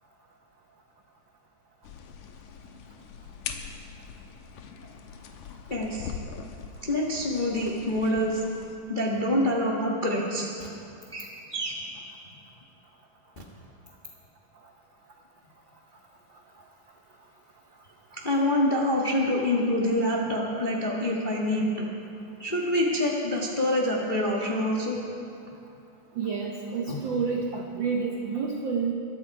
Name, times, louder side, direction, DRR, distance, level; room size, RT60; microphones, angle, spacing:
sound 1, 1.8-8.8, left 7 dB, 80° left, 2.3 m, -42 dB
voice 1, 5.7-6.4 6.8-8.4 8.9-10.5 11.1-11.8 18.1-21.9 22.4-25.0 26.9-27.0, left 1 dB, 35° left, -3 dB, 0.8 m, -26 dB
voice 2, 26.1-28.9, right 5 dB, 80° right, 1 dB, 1.0 m, -29 dB
22.0 x 12.0 x 4.7 m, 2.5 s
omnidirectional pair, 3.6 m